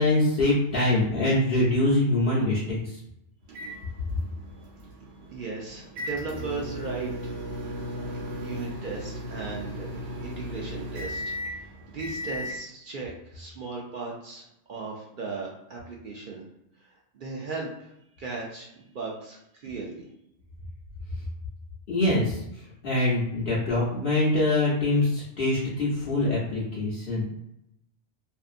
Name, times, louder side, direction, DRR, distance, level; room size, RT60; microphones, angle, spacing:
voice 1, 0.0-2.8 21.9-22.4 22.8-27.2, left 2 dB, 55° left, -8 dB, 0.8 m, -24 dB
sound 1, 3.5-12.6, equal, 80° right, 1.1 m, -36 dB
voice 2, 5.3-7.3 8.4-16.4 16.8-17.9 18.2-20.1, right 4 dB, 60° right, -2 dB, 0.6 m, -37 dB
2.6 x 2.4 x 2.5 m, 0.80 s
omnidirectional pair, 1.2 m